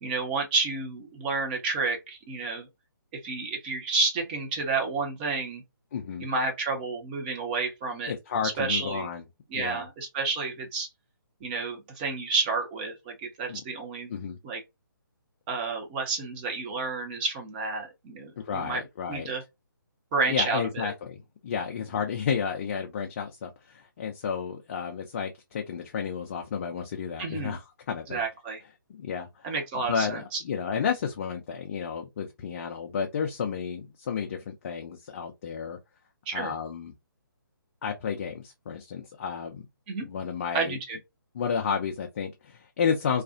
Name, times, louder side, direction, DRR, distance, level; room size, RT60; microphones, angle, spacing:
voice 1, 0.0-2.7 3.1-5.6 6.2-8.1 8.4-9.1 9.5-10.9 11.4-14.1 14.4-14.6 15.5-18.8 19.1-19.4 20.1-20.9 27.2-27.6 28.1-28.6 29.4-30.4 36.3-36.5 39.9-40.1 40.5-41.0, right 4 dB, 25° right, 0.7 m, -30 dB
voice 2, 5.9-6.3 8.1-9.2 9.5-9.9 13.5-13.6 14.1-14.4 18.4-19.3 20.3-28.2 28.9-35.8 36.3-36.9 37.8-39.7 40.0-40.8 41.3-43.2, left 6 dB, 40° left, 0.4 m, -32 dB
2.4 x 2.3 x 2.4 m
figure-of-eight pair, 145°, 12 cm